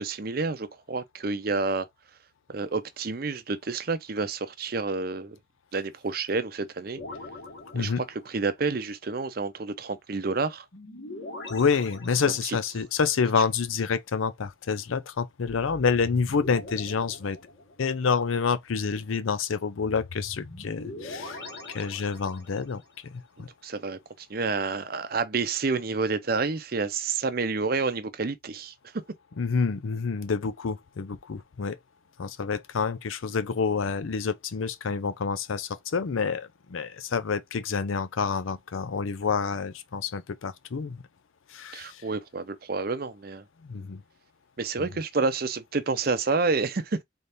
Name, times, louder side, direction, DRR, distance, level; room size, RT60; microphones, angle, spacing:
voice 1, 0.0-1.9 2.5-5.4 5.7-7.0 7.8-7.9 8.3-10.6 12.4-12.6 23.6-28.7 41.7-43.4 44.6-47.0, right 4 dB, 50° right, 0.6 m, -29 dB
sound 1, 7.0-8.5 10.7-12.8 15.5-18.0 19.8-22.8, left 2 dB, 65° left, 1.6 m, -42 dB
voice 2, 11.5-17.4 17.8-21.4 21.7-22.8 23.1-23.5 29.4-31.8 32.2-41.0 41.5-42.0 43.6-44.0 44.8-44.9, left 5 dB, 85° left, 0.5 m, -28 dB
3.9 x 3.4 x 2.6 m
head